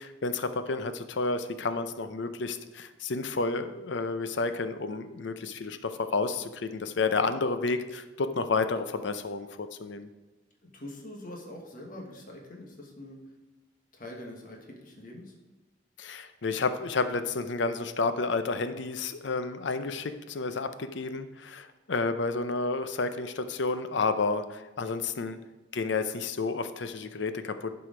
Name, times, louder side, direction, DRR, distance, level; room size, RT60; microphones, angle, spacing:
voice 1, 0.0-10.1 16.0-25.4 25.7-27.7, left 3 dB, 70° left, 10 dB, 0.6 m, -31 dB
voice 2, 10.6-13.2 13.9-15.3, left 1 dB, 45° left, 0 dB, 1.5 m, -44 dB
11.0 x 4.9 x 5.0 m, 1.1 s
head